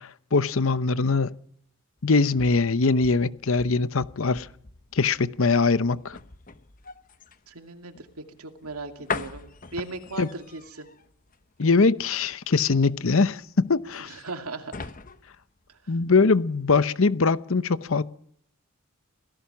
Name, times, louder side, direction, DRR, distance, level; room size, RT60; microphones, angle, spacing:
voice 1, 0.0-1.4 2.0-4.5 4.9-6.2 10.2-10.3 11.6-14.1 15.9-18.0, left 4 dB, 60° left, 0.8 m, -22 dB
sound 1, 2.0-16.4 16.7-16.9, left 4 dB, 35° left, 1.0 m, -42 dB
voice 2, 7.5-10.9 14.0-14.9 15.7-16.0, right 3 dB, 80° right, 2.5 m, -38 dB
27.0 x 17.5 x 6.0 m
head